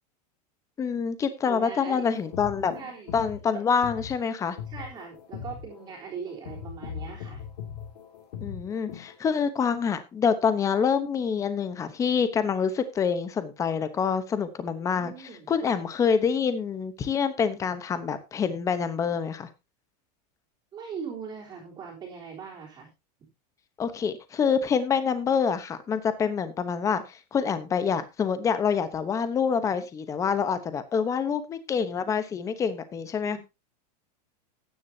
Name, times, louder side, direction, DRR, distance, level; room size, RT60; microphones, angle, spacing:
voice 1, 0.8-2.7 3.1-4.6 8.4-15.1 15.5-19.5 23.8-33.4, left 6 dB, 15° left, 12 dB, 1.0 m, -26 dB
voice 2, 1.4-2.0 2.7-3.2 4.7-7.4 14.6-15.8 20.7-22.9 33.2-33.4, right 6 dB, 20° right, -3 dB, 3.6 m, -40 dB
sound 1, 2.1-9.1, left 7 dB, 75° left, 2.6 m, -40 dB
14.0 x 10.0 x 2.8 m, 0.25 s
supercardioid pair, 160°, 21 cm